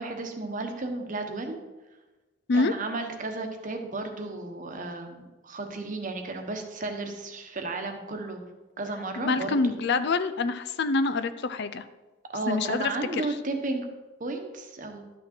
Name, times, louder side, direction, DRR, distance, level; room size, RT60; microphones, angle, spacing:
voice 1, 0.0-1.6 2.5-8.4 8.8-9.6 12.3-13.9 14.2-15.0, right 2 dB, 40° right, 4 dB, 1.1 m, -33 dB
voice 2, 9.2-11.8 12.5-12.9, left 3 dB, 55° left, 11 dB, 0.5 m, -26 dB
12.0 x 6.2 x 4.4 m, 1.2 s
head